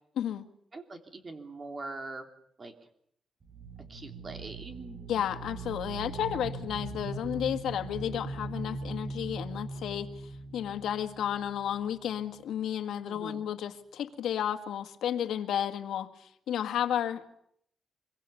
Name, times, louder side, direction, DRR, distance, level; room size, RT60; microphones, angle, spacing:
voice 1, 0.7-2.3 2.6-2.7 3.9-5.0 13.1-13.4, right 3 dB, 30° right, 5 dB, 3.2 m, -42 dB
sound 1, 3.4-12.1, right 3 dB, 50° right, 6.1 m, -40 dB
voice 2, 5.1-10.1 10.5-17.3, left 10 dB, 90° left, 8 dB, 1.8 m, -32 dB
25.5 x 23.0 x 7.1 m, 0.69 s
cardioid pair, 120°, 0 cm